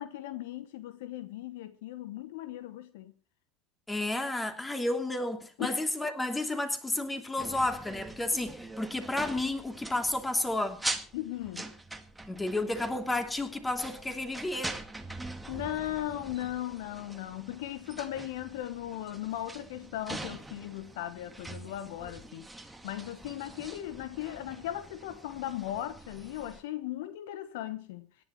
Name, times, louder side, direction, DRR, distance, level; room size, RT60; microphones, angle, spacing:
voice 1, 0.0-3.1 5.6-5.8 11.1-11.7 15.5-22.5 22.8-28.1, left 13 dB, 60° left, 1.0 m, -37 dB
voice 2, 3.9-10.8 12.3-14.8, left 2 dB, 10° left, 2.9 m, -31 dB
sound 1, 7.4-26.6, right 2 dB, 5° right, 2.0 m, -43 dB
26.5 x 11.0 x 3.1 m
figure-of-eight pair, 75°, 0 cm